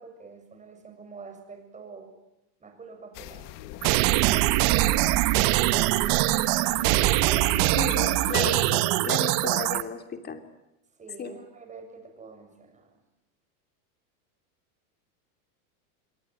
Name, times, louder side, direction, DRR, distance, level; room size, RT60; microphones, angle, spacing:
voice 1, 0.0-2.1 2.6-3.5 7.5-7.9 11.0-13.0, right 4 dB, 15° right, 5 dB, 7.1 m, -46 dB
sound 1, 3.1-8.7, left 14 dB, 45° left, 1.8 m, -42 dB
sound 2, 3.8-9.8, right 18 dB, 45° right, 1.3 m, -23 dB
voice 2, 7.7-10.4 11.2-11.3, left 5 dB, 20° left, 7 dB, 3.2 m, -34 dB
27.5 x 21.5 x 9.3 m, 0.91 s
supercardioid pair, 140°, 45 cm